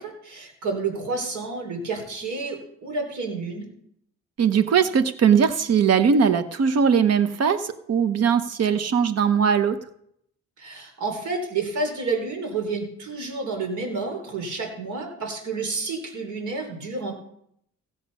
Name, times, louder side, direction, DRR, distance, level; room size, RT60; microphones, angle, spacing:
voice 1, 0.0-3.7 10.6-17.1, right 3 dB, 75° right, 3 dB, 3.8 m, -30 dB
voice 2, 4.4-9.8, right 7 dB, 55° right, 11 dB, 0.9 m, -20 dB
17.0 x 6.6 x 5.4 m, 0.72 s
cardioid pair, 90°, 30 cm